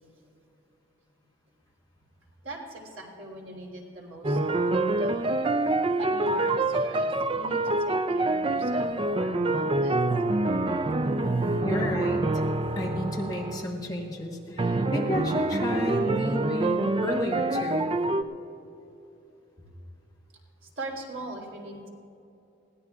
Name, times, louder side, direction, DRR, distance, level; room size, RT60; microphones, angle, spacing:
voice 1, 2.4-4.4 5.0-5.3 6.0-10.0 20.6-21.9, right 2 dB, 80° right, -2 dB, 3.2 m, -41 dB
sound 1, 4.2-13.7 14.6-18.2, right 2 dB, 25° right, 0.3 m, -26 dB
voice 2, 11.6-12.3 12.7-17.9, left 1 dB, 20° left, -2 dB, 1.2 m, -31 dB
21.0 x 16.5 x 2.4 m, 2.8 s
head